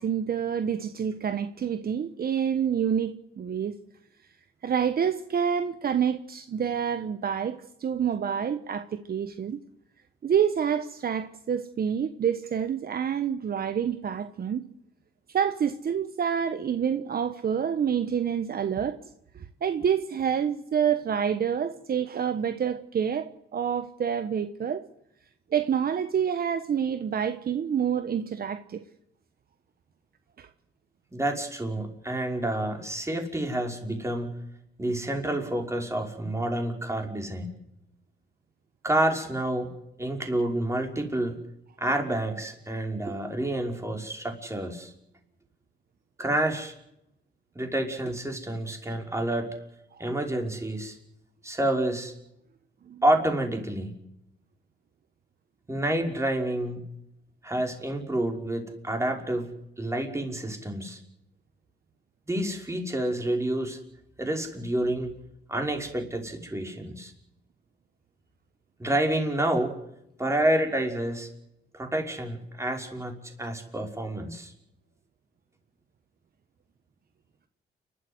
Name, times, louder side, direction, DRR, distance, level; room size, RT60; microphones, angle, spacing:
voice 1, 0.0-3.8 4.6-9.6 10.2-14.6 15.3-19.0 19.3-24.8 25.5-28.8 30.4-30.5 49.9-50.0 52.9-53.0, right 8 dB, 50° right, 1.3 m, -27 dB
voice 2, 31.1-34.4 34.8-37.5 38.8-39.7 40.0-41.4 41.8-44.9 46.2-46.7 47.6-49.5 50.0-51.0 51.4-52.1 53.0-53.9 55.7-56.9 57.4-59.5 59.8-61.0 62.3-63.8 64.2-65.1 65.5-67.1 68.8-69.7 70.2-71.3 71.7-74.5, right 1 dB, 15° right, 5.6 m, -28 dB
30.0 x 13.0 x 8.0 m
cardioid pair, 90°, 20 cm